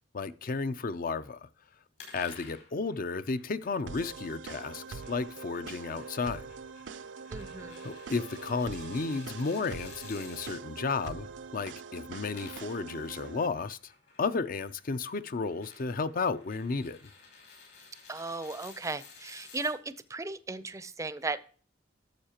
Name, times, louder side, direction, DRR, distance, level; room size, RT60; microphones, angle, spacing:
voice 1, 0.1-1.5 2.1-6.5 7.8-11.3 11.5-13.8 14.2-17.0, left 4 dB, 50° left, 0.5 m, -33 dB
sound 1, 2.0-10.6 12.1-19.7, left 5 dB, 65° left, 4.7 m, -53 dB
sound 2, 3.9-13.5, right 5 dB, 80° right, 0.5 m, -43 dB
voice 2, 7.3-7.8 18.1-21.4, right 3 dB, 15° right, 0.5 m, -36 dB
11.5 x 7.1 x 2.9 m
head